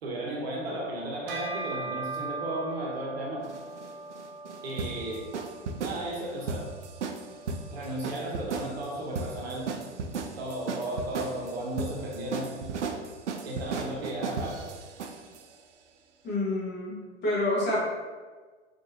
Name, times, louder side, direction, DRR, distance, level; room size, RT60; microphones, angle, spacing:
voice 1, 0.0-3.4 4.6-5.2 5.8-6.6 7.7-9.7 10.4-12.6 13.4-14.7, right 1 dB, 60° right, -2 dB, 1.0 m, -34 dB
Bell, 1.3-11.0, right 3 dB, 35° right, 0.6 m, -42 dB
sound 1, 3.4-15.4, right 4 dB, 75° right, 0.5 m, -36 dB
voice 2, 16.2-17.8, left 2 dB, 30° left, -7 dB, 1.5 m, -28 dB
4.2 x 3.1 x 2.7 m, 1.4 s
figure-of-eight pair, 90°, 36 cm